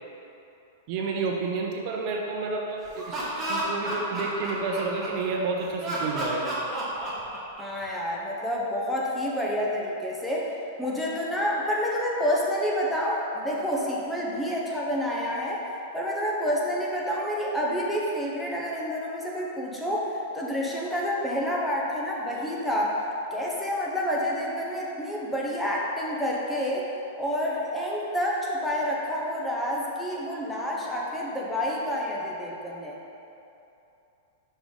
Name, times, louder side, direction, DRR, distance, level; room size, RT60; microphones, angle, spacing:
voice 1, 0.9-6.6, right 4 dB, 45° right, 0 dB, 0.7 m, -30 dB
Laughter, 2.8-5.3 5.8-7.8, right 1 dB, 15° right, 1.2 m, -31 dB
voice 2, 7.6-10.5 10.8-15.6 15.9-23.0 23.3-26.9 27.2-32.9, equal, 5° left, -4 dB, 0.8 m, -28 dB
5.3 x 3.9 x 4.8 m, 2.9 s
hypercardioid pair, 145°, 0 cm